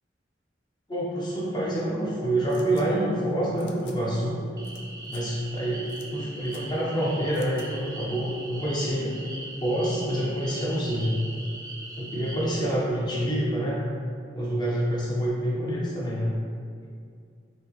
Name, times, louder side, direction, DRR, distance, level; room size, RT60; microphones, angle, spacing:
voice 1, 0.9-4.5 5.1-5.8 6.1-9.1 9.6-11.2 12.0-13.8 14.3-16.4, right 1 dB, 25° left, -6 dB, 0.6 m, -27 dB
sound 1, 2.5-2.8 3.6-4.0 4.6-4.8 5.0-5.2 5.9-6.1 6.4-6.6 7.3-7.7, left 6 dB, 70° left, 0.3 m, -50 dB
sound 2, 4.6-12.6, right 2 dB, 20° right, 0.3 m, -41 dB
3.1 x 2.6 x 2.9 m, 2.3 s
head